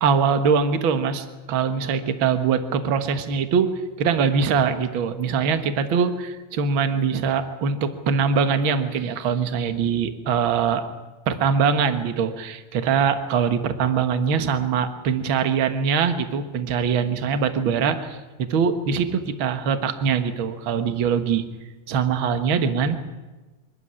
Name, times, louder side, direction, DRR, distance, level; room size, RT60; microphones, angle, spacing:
voice 1, 0.0-3.7 4.0-10.8 11.3-21.4 21.9-23.0, right 6 dB, 55° right, 9 dB, 1.4 m, -22 dB
24.0 x 14.0 x 9.9 m, 1.2 s
omnidirectional pair, 4.1 m